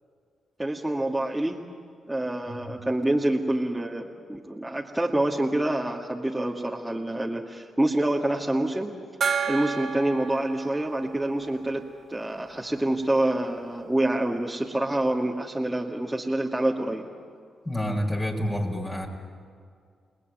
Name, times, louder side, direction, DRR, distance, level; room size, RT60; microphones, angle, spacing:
voice 1, 0.6-1.6 2.1-8.9 9.5-17.1, right 1 dB, 10° right, -3 dB, 2.5 m, -27 dB
Gong, 9.2-12.5, right 6 dB, 60° right, 2.1 m, -32 dB
voice 2, 17.7-19.1, equal, 25° left, 0 dB, 5.5 m, -28 dB
29.5 x 19.5 x 9.6 m, 2.1 s
supercardioid pair, 45°, 0 cm